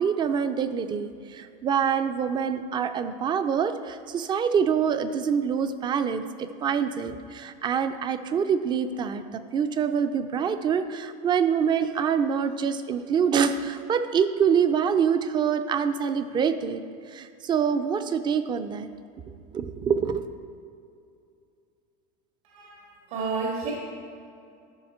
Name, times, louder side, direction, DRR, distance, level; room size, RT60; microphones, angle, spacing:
voice 1, 0.0-16.8 17.1-18.9 19.5-20.2, right 7 dB, 25° right, 10 dB, 0.4 m, -25 dB
voice 2, 22.4-23.7, right 4 dB, 75° right, -3 dB, 1.9 m, -31 dB
13.0 x 5.6 x 4.3 m, 2.4 s
supercardioid pair, 145°, 20 cm